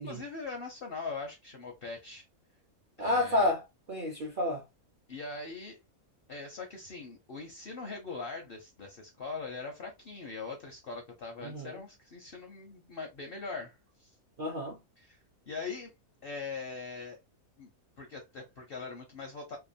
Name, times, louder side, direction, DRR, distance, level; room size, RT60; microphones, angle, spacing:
voice 1, 0.0-2.3 3.0-3.5 5.1-5.8 6.3-14.1 15.0-15.2 15.5-15.9 16.2-17.2 17.6-17.7 18.0-19.6, left 4 dB, 60° left, 0.6 m, -41 dB
voice 2, 3.0-3.6 3.9-4.6 11.4-11.7 14.4-14.8, left 2 dB, 55° right, 0.6 m, -30 dB
2.9 x 2.2 x 2.5 m
omnidirectional pair, 1.5 m